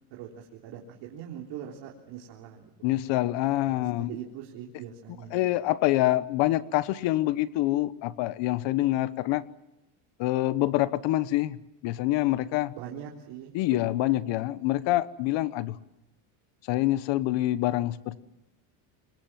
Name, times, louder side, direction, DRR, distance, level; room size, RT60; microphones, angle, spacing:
voice 1, 0.1-2.7 3.7-5.4 12.7-14.2, right 9 dB, 65° right, -1 dB, 3.8 m, -42 dB
voice 2, 2.8-4.1 5.3-9.4 10.2-11.6 11.8-12.7 13.5-15.8 16.7-18.2, left 16 dB, 60° left, 16 dB, 1.2 m, -26 dB
26.5 x 22.5 x 7.5 m, 0.96 s
supercardioid pair, 125°, 48 cm